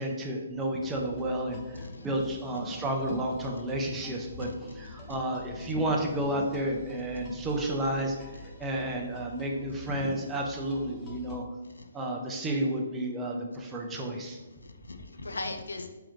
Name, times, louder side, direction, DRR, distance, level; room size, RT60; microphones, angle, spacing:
voice 1, 0.0-4.5 4.8-11.4 11.9-14.4, right 1 dB, 15° right, 0 dB, 0.6 m, -31 dB
sound 1, 0.8-11.4, left 1 dB, 25° left, 0.7 m, -47 dB
voice 2, 1.7-2.1 2.5-2.7 2.9-3.0 4.4-4.6 4.9-5.0 5.6-5.8 6.2-6.3 8.3-8.7 9.9-10.1 11.6-11.9 14.4-15.9, left 3 dB, 85° left, 7 dB, 0.4 m, -40 dB
3.7 x 3.0 x 3.1 m, 1.2 s
hypercardioid pair, 140°, 0 cm